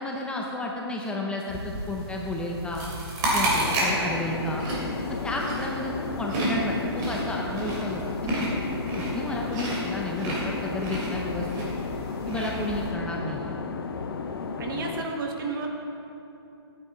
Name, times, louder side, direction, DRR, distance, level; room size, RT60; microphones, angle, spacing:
voice 1, 0.0-2.8 3.3-4.6 5.2-5.9 6.2-8.5 9.1-11.6 12.3-13.6, left 1 dB, 5° left, -1 dB, 0.7 m, -32 dB
sound 1, 1.5-12.9, right 1 dB, 25° right, 2.7 m, -31 dB
sound 2, 3.5-15.0, left 5 dB, 60° left, 0.8 m, -34 dB
voice 2, 14.6-15.7, right 4 dB, 50° right, 2 dB, 1.7 m, -31 dB
14.0 x 9.5 x 3.9 m, 2.8 s
hypercardioid pair, 140°, 14 cm